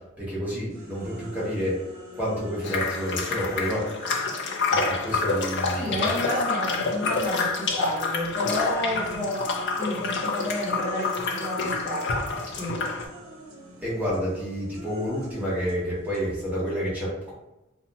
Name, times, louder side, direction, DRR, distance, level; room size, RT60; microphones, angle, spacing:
voice 1, 0.2-1.7 2.1-3.8 4.7-6.1 13.8-17.3, equal, 5° right, -8 dB, 1.1 m, -29 dB
sound 1, 0.7-7.8 8.1-16.7, left 1 dB, 75° right, 0.7 m, -44 dB
sound 2, 2.6-13.0, left 4 dB, 55° left, 0.4 m, -28 dB
voice 2, 5.7-9.5 9.8-12.2 12.5-12.8, left 1 dB, 10° left, -8 dB, 0.6 m, -31 dB
2.7 x 2.1 x 2.8 m, 0.96 s
head